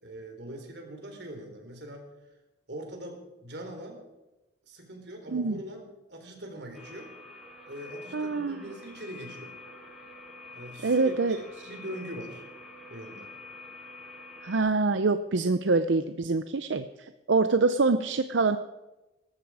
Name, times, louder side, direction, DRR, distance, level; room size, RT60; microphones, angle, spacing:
voice 1, 0.0-2.1 2.7-4.1 4.7-7.1 7.7-9.6 10.5-12.4 12.9-13.3, right 1 dB, 65° right, 3 dB, 3.9 m, -42 dB
sound 1, 6.7-14.6, left 2 dB, ahead, 5.7 m, -47 dB
voice 2, 8.1-8.6 10.8-11.4 14.4-18.6, right 3 dB, 90° right, 10 dB, 0.7 m, -25 dB
18.5 x 14.5 x 4.9 m, 1.0 s
head